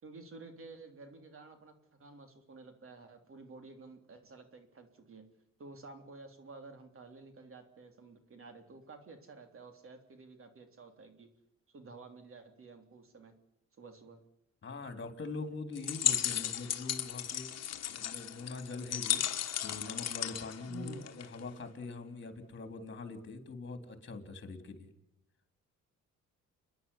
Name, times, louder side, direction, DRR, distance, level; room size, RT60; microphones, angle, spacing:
voice 1, 0.0-5.3 5.6-11.3 11.7-13.4 13.8-14.2 20.6-21.1, right 3 dB, 45° right, 6 dB, 3.3 m, -51 dB
voice 2, 14.6-17.5 17.9-19.2 19.6-24.9, left 3 dB, 40° left, 7 dB, 3.5 m, -43 dB
sound 1, 15.8-21.4, left 10 dB, 55° left, 1.4 m, -35 dB
29.5 x 10.5 x 10.0 m, 0.82 s
cardioid pair, 90°, 30 cm